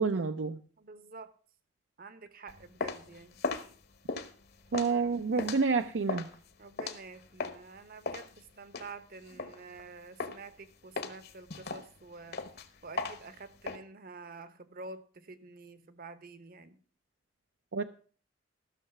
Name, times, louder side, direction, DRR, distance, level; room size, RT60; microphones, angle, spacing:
voice 1, 0.0-0.6 4.7-6.3 17.7-17.8, right 4 dB, 70° right, 7 dB, 0.5 m, -28 dB
voice 2, 0.8-1.3 2.0-3.4 6.6-12.4 12.8-16.8, right 3 dB, 50° right, 13 dB, 1.0 m, -48 dB
sound 1, 2.5-7.7 8.1-9.9 10.2-10.6 11.0-13.8, left 3 dB, 60° left, 1.1 m, -38 dB
14.0 x 6.5 x 5.9 m, 0.41 s
head